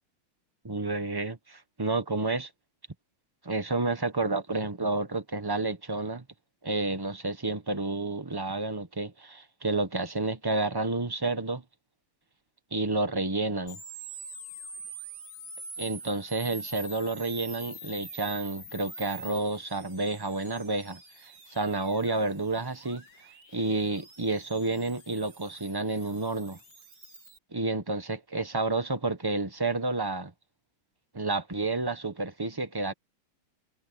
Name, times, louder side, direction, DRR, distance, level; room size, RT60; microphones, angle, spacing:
voice 1, 0.6-2.5 3.4-6.2 6.6-11.6 12.7-13.8 15.8-23.0 23.5-26.6 27.5-30.3 31.1-32.9, right 2 dB, 15° right, 0.7 m, -30 dB
sound 1, 13.7-27.4, right 3 dB, 55° right, 6.8 m, -45 dB
omnidirectional pair, 2.3 m